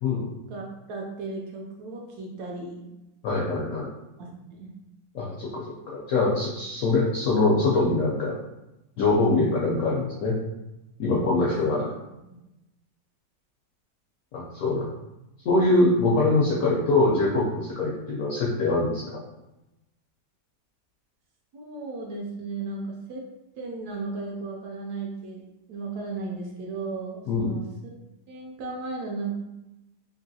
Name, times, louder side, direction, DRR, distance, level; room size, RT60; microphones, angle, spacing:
voice 1, 0.5-2.9 4.2-4.7 12.1-12.4 21.5-23.2 23.6-25.4 25.7-27.9 28.3-29.3, right 3 dB, 70° right, -1 dB, 1.0 m, -35 dB
voice 2, 3.2-3.9 5.1-8.4 9.0-10.3 11.0-11.8 14.3-14.9 15.4-19.2 27.3-27.6, left 2 dB, 75° left, -5 dB, 0.7 m, -23 dB
3.1 x 2.7 x 2.7 m, 0.96 s
omnidirectional pair, 1.9 m